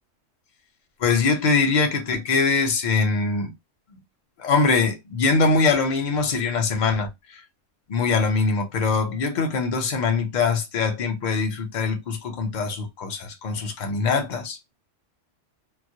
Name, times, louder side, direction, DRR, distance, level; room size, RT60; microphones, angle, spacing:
voice 1, 1.0-3.5 4.4-7.4 7.9-14.7, left 4 dB, 50° left, 0.6 m, -23 dB
2.3 x 2.0 x 2.7 m
omnidirectional pair, 1.3 m